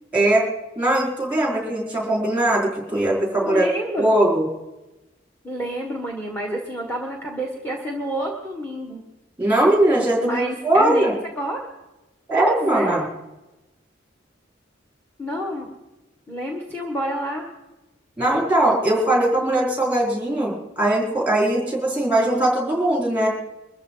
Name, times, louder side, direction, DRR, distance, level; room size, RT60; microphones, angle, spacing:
voice 1, 0.1-0.4 0.8-3.7 4.0-4.5 9.4-11.1 12.3-13.1 18.2-23.3, right 1 dB, 10° right, -3 dB, 4.7 m, -20 dB
voice 2, 3.4-4.2 5.4-9.0 10.0-11.6 12.4-13.0 15.2-15.7 16.3-17.5, right 1 dB, 10° left, 1 dB, 1.7 m, -28 dB
23.0 x 14.0 x 4.0 m, 1.0 s
head